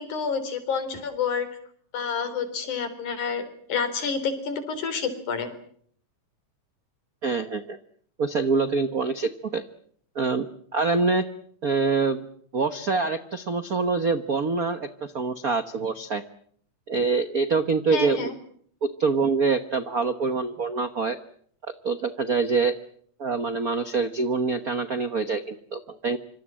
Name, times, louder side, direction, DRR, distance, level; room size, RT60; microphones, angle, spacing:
voice 1, 0.0-1.5 1.9-3.4 3.7-5.5 17.9-18.3, left 5 dB, 75° left, 11 dB, 5.1 m, -28 dB
voice 2, 7.2-7.8 8.2-9.6 10.1-10.5 10.7-11.3 11.6-12.3 12.5-16.2 16.9-18.3 18.8-21.2 21.8-22.7 23.2-26.2, right 4 dB, 70° right, 10 dB, 0.8 m, -25 dB
26.0 x 25.5 x 7.6 m, 0.62 s
omnidirectional pair, 3.5 m